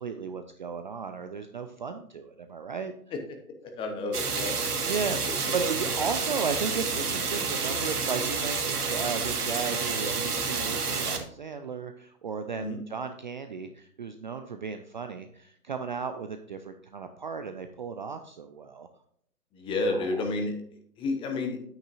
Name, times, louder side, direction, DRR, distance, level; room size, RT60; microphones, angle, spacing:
voice 1, 0.0-2.9 4.8-18.9 19.9-20.1, right 5 dB, 30° right, 7 dB, 0.5 m, -35 dB
voice 2, 3.8-4.6 12.5-12.8 19.5-20.5 21.0-21.6, left 2 dB, 10° left, 4 dB, 0.9 m, -30 dB
sound 1, 4.1-11.2, right 4 dB, 75° right, 1.8 m, -29 dB
9.3 x 8.9 x 2.5 m, 0.67 s
figure-of-eight pair, 125°, 46 cm